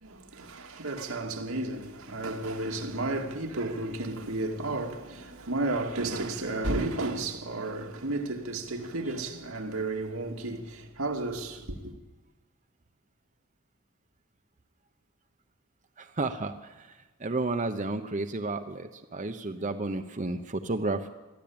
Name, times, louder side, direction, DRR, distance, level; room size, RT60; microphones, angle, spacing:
voice 1, 0.0-11.9, right 2 dB, 85° right, 2.4 m, -33 dB
voice 2, 16.0-16.9 17.2-21.1, right 2 dB, 35° right, 0.9 m, -32 dB
22.5 x 14.5 x 8.8 m
head